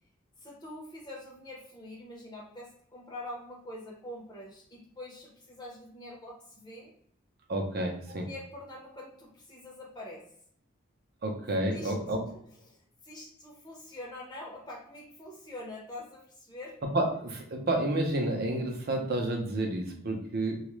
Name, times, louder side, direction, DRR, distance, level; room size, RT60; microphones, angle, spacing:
voice 1, 0.4-6.9 8.1-10.2 11.7-11.9 12.6-16.8, left 1 dB, 20° left, -3 dB, 0.6 m, -45 dB
voice 2, 7.5-8.3 11.2-12.2 16.9-20.6, right 1 dB, 50° right, 2 dB, 0.5 m, -30 dB
2.3 x 2.0 x 3.0 m, 0.65 s
head